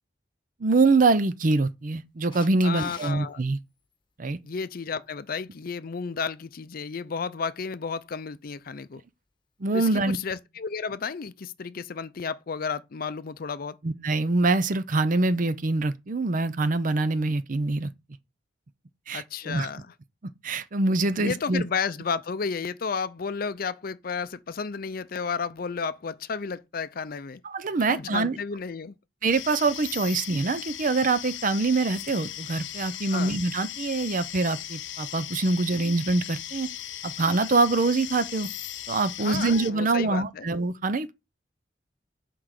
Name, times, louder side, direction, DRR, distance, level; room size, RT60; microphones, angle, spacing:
voice 1, 0.6-3.6 4.2-4.4 9.6-10.2 13.8-17.9 19.1-19.7 20.2-21.6 27.4-28.4 29.2-36.7 37.0-38.5 38.9-41.1, right 3 dB, 45° right, 0.6 m, -24 dB
Camera, 2.3-3.1 9.9-10.0, left 5 dB, 25° left, 1.3 m, -44 dB
voice 2, 2.6-3.4 4.4-9.0 9.7-13.8 19.1-19.9 21.2-27.4 27.8-28.9 33.1-33.3 39.2-40.5, left 5 dB, 50° left, 0.5 m, -32 dB
sound 1, 29.3-39.7, left 12 dB, 90° left, 0.7 m, -38 dB
5.9 x 4.7 x 6.5 m
head